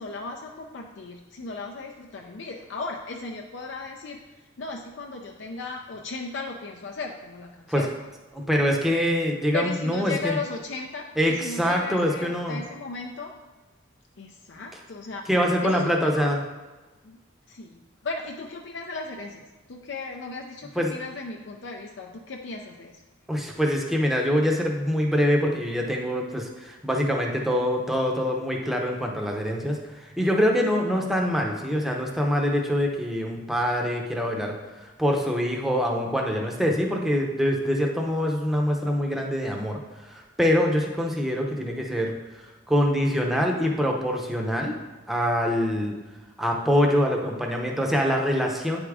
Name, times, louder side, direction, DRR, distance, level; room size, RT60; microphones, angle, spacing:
voice 1, 0.0-4.2 4.6-7.9 9.5-13.3 14.2-15.3 15.6-16.3 17.0-17.2 17.5-19.4 19.7-23.0, left 3 dB, 65° left, 1 dB, 0.5 m, -36 dB
voice 2, 8.3-10.4 11.2-12.6 15.3-16.4 20.8-20.9 23.3-39.8 40.0-44.7 45.1-46.0 46.4-48.8, equal, ahead, 0 dB, 0.7 m, -24 dB
8.8 x 3.6 x 4.8 m, 1.2 s
head